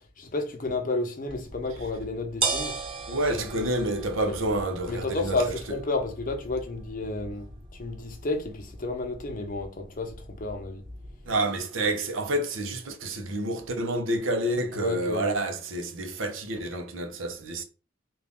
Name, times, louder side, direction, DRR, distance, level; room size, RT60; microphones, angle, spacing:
voice 1, 0.2-2.8 3.4-3.5 4.3-4.4 4.9-7.5 7.8-10.8 14.7-15.4, left 2 dB, 40° left, 0.8 m, -31 dB
sound 1, 1.3-11.3, right 4 dB, 25° right, 1.2 m, -38 dB
voice 2, 3.1-5.5 11.3-17.6, right 1 dB, 75° right, 0.8 m, -29 dB
3.8 x 2.5 x 3.5 m
head